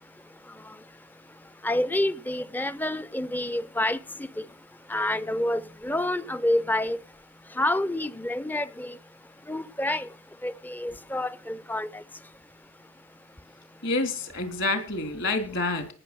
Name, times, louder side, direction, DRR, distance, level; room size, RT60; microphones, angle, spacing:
voice 1, 1.6-4.0 4.9-7.0 7.6-9.0 9.5-10.1 10.4-12.0, left 1 dB, 10° left, 0.6 m, -28 dB
voice 2, 13.8-15.9, left 2 dB, 65° left, 3.6 m, -28 dB
18.5 x 6.6 x 6.1 m
head